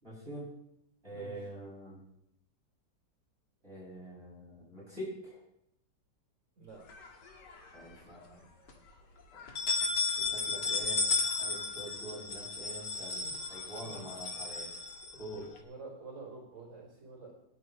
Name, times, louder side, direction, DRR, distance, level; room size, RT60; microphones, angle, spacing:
voice 1, 0.0-0.5 1.0-2.0 3.6-5.4 7.7-8.4 9.5-9.6 10.2-11.1 11.4-13.2 13.5-14.7 15.1-15.5, right 1 dB, 35° right, -7 dB, 7.3 m, -45 dB
sound 1, 6.9-7.8 8.2-8.3 8.7-8.8 9.3-15.6, left 4 dB, 70° left, 2.4 m, -34 dB
voice 2, 15.3-17.3, right 3 dB, 90° right, -5 dB, 5.0 m, -48 dB
27.5 x 10.5 x 3.1 m, 0.77 s
omnidirectional pair, 1.9 m